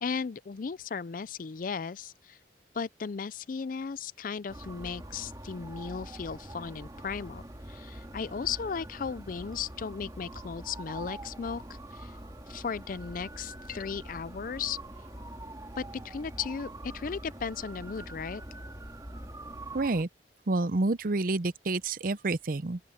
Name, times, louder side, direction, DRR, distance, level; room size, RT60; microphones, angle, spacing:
voice 1, 0.0-2.4 2.7-7.4 7.7-11.6 11.9-12.1 12.5-14.8 15.8-18.4, left 6 dB, 50° left, 0.4 m, -36 dB
sound 1, 4.5-20.0, right 1 dB, 20° right, 2.1 m, -44 dB
voice 2, 19.7-20.1 20.5-22.8, right 2 dB, 50° right, 0.7 m, -28 dB
open air
head